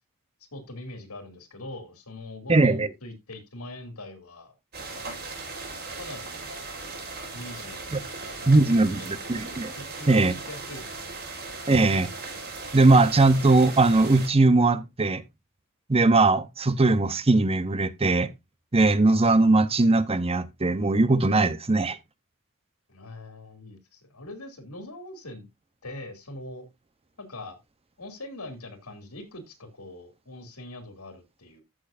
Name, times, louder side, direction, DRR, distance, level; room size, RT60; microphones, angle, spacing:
voice 1, 0.5-4.5 5.9-6.4 7.3-8.1 8.4-9.4 9.8-11.2 22.9-25.5 25.8-26.7 27.2-27.6 28.0-31.6, left 1 dB, 90° left, 2.7 m, -42 dB
voice 2, 2.5-2.9 7.9-8.0 8.5-9.7 10.1-10.3 11.7-12.1 12.7-15.2 15.9-18.3 18.7-22.0, right 2 dB, 25° right, 0.8 m, -20 dB
sound 1, 4.7-14.3, right 3 dB, 50° right, 3.9 m, -38 dB
14.5 x 6.3 x 2.5 m
head